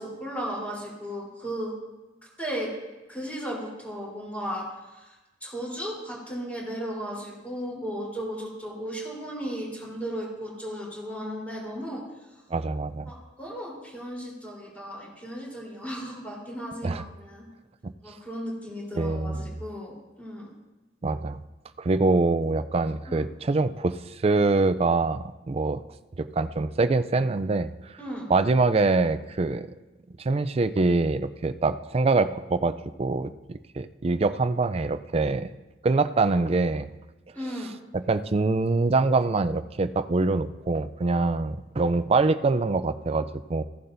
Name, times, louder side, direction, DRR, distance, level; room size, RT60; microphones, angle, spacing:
voice 1, 0.0-1.7 2.4-2.7 3.1-4.7 4.9-5.1 5.4-12.0 13.1-17.5 18.0-20.5 23.1-23.2 28.0-28.3 37.3-37.7, equal, 10° left, -4 dB, 3.7 m, -35 dB
voice 2, 12.5-13.1 16.8-17.0 17.8-17.9 18.9-19.5 21.0-21.4 21.8-25.8 26.2-27.7 28.3-29.7 30.2-35.5 35.8-36.9 37.9-43.6, right 3 dB, 35° right, 12 dB, 0.4 m, -24 dB
16.0 x 11.0 x 2.7 m, 1.1 s
head